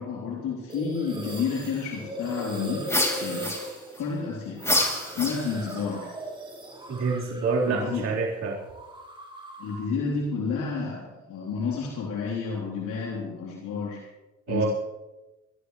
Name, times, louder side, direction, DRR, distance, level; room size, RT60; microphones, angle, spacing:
voice 1, 0.0-2.8 3.2-3.6 4.0-4.6 5.1-6.1 7.7-8.1 9.6-14.0 14.5-14.6, left 5 dB, 90° left, -4 dB, 3.5 m, -30 dB
sound 1, 0.7-8.1 8.4-9.9, right 1 dB, 15° right, 5.1 m, -39 dB
sound 2, 2.9-4.0 4.6-5.8, left 1 dB, 10° left, 3.0 m, -27 dB
voice 2, 6.9-8.6 14.5-14.7, right 4 dB, 60° right, -5 dB, 4.2 m, -26 dB
25.0 x 14.0 x 3.3 m, 1.1 s
cardioid pair, 90°, 30 cm